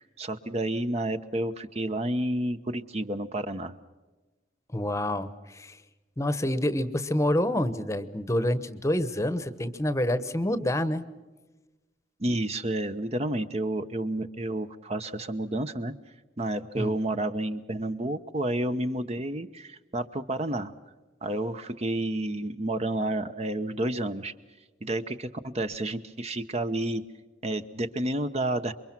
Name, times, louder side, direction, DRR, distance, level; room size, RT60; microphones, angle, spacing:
voice 1, 0.0-3.7 12.2-15.9 16.4-20.7 21.2-24.3 24.8-27.0 27.4-28.7, right 1 dB, 35° right, 9 dB, 0.9 m, -30 dB
voice 2, 4.7-5.8 6.2-11.0 16.8-16.9, left 1 dB, 15° left, 13 dB, 1.0 m, -27 dB
28.0 x 23.5 x 6.0 m, 1.2 s
head